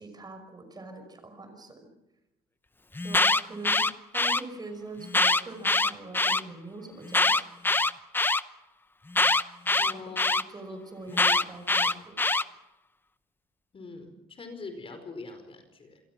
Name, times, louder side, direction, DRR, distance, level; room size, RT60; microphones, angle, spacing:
voice 1, 0.0-1.9 3.0-3.9 4.1-7.4 9.9-10.1 10.4-12.2, right 2 dB, 25° right, 7 dB, 5.7 m, -43 dB
Alarm, 2.9-4.4 5.1-6.4 7.1-8.4 9.1-10.4 11.1-12.4, left 2 dB, 10° left, 0.8 m, -23 dB
voice 2, 9.8-10.6 11.1-11.2 13.7-16.0, left 3 dB, 35° left, 7 dB, 4.9 m, -43 dB
28.0 x 22.0 x 6.2 m, 0.96 s
cardioid pair, 110°, 17 cm